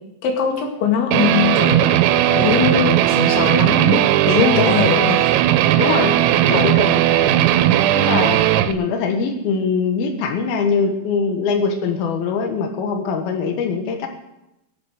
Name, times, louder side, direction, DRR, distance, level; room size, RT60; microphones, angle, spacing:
voice 1, 0.2-2.0 2.3-4.0 4.3-5.3 6.5-6.8, left 6 dB, 85° left, 2 dB, 4.4 m, -21 dB
Guitar, 1.1-8.7, right 12 dB, 85° right, 3.1 m, -16 dB
voice 2, 4.6-5.2 5.8-7.5 7.9-8.4 8.6-14.1, left 5 dB, 65° left, 3 dB, 3.0 m, -23 dB
24.0 x 8.2 x 5.1 m, 0.88 s
omnidirectional pair, 5.2 m